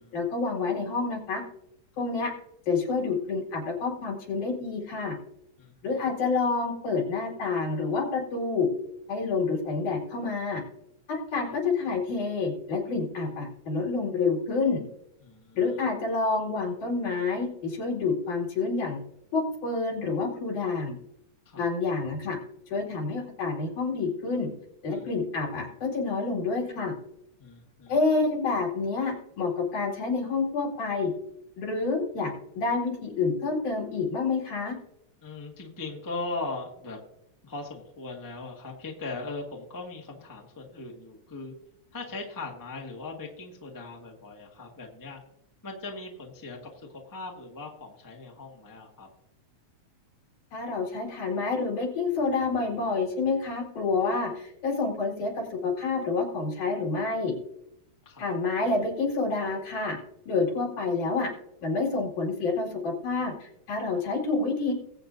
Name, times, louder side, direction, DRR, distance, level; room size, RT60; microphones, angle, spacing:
voice 1, 0.1-1.4 2.0-2.3 2.7-5.2 5.8-8.7 9.1-10.6 11.1-14.8 15.6-19.0 19.3-21.0 21.6-22.4 22.7-24.5 24.8-26.9 27.9-31.1 31.6-34.8 50.5-57.4 58.2-60.0 60.3-61.3 61.6-64.7, left 4 dB, 85° left, -1 dB, 3.9 m, -28 dB
voice 2, 15.2-15.6 21.4-21.7 24.9-25.1 27.4-27.9 35.2-37.0 37.4-41.5 41.9-45.2 45.6-49.1 58.0-58.3, left 3 dB, 10° left, 0 dB, 0.9 m, -39 dB
21.0 x 8.1 x 2.6 m, 0.77 s
omnidirectional pair, 3.4 m